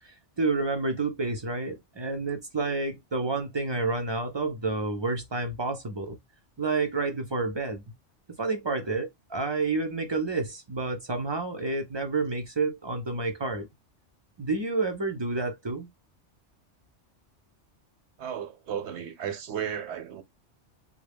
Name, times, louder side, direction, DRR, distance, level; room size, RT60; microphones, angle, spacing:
voice 1, 0.4-6.2 6.6-7.8 8.4-13.7 14.4-15.9, right 3 dB, 40° right, 0.3 m, -29 dB
voice 2, 18.2-20.2, right 8 dB, 70° right, 0.8 m, -34 dB
3.7 x 2.1 x 3.3 m
omnidirectional pair, 1.2 m